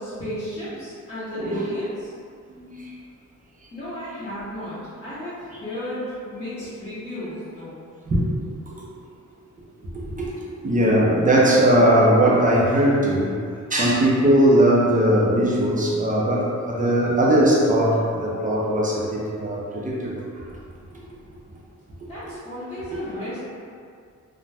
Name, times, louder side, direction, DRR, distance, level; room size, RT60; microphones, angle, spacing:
voice 1, 0.0-2.1 3.7-7.8 22.1-23.4, equal, 20° left, -14 dB, 0.7 m, -34 dB
voice 2, 1.4-1.7 2.5-2.8 8.1-8.3 10.2-10.3 10.6-13.3 13.7-20.2, right 1 dB, 25° right, -5 dB, 0.5 m, -19 dB
2.6 x 2.1 x 3.2 m, 2.2 s
wide cardioid pair, 165°, 31 cm